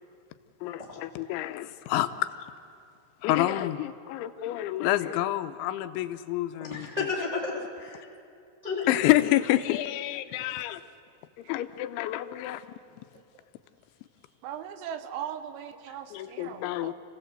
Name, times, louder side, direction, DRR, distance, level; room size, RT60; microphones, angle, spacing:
voice 1, 0.6-2.3 3.2-6.9 8.9-10.8 11.4-12.7 16.1-16.9, left 15 dB, 85° left, 10 dB, 3.0 m, -28 dB
voice 2, 6.6-8.1 8.6-9.1, left 4 dB, 15° right, -3 dB, 1.5 m, -32 dB
voice 3, 14.4-16.9, right 9 dB, 85° right, 10 dB, 3.5 m, -39 dB
28.5 x 16.5 x 8.1 m, 2.5 s
omnidirectional pair, 5.3 m